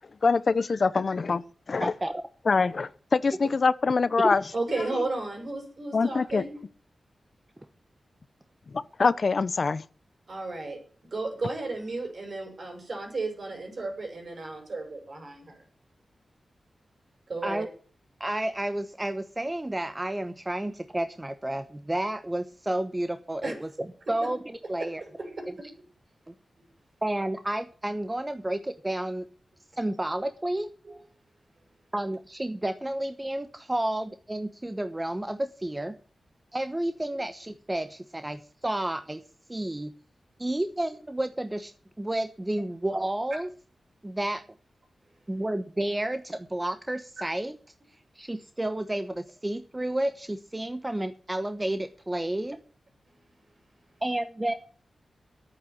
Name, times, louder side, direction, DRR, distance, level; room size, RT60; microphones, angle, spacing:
voice 1, 0.2-1.4 1.7-1.9 2.5-4.4 5.9-6.4 9.0-9.8, left 4 dB, 55° left, 0.7 m, -24 dB
voice 2, 1.8-2.2 4.2-4.3 17.4-17.7 18.2-23.7 24.1-25.0 25.5-25.6 27.0-29.3 29.7-30.7 31.9-35.9 36.5-39.2 39.5-39.9 40.4-41.7 42.0-43.5 44.0-44.4 45.3-47.5 48.1-52.6 54.0-54.5, right 1 dB, 20° right, 1.0 m, -31 dB
voice 3, 4.5-6.6 10.3-10.8 11.1-15.6 17.3-17.6 23.4-23.5 24.8-25.5 30.8-31.0, right 2 dB, 55° right, 6.0 m, -34 dB
10.5 x 9.0 x 8.1 m
cardioid pair, 75°, 0 cm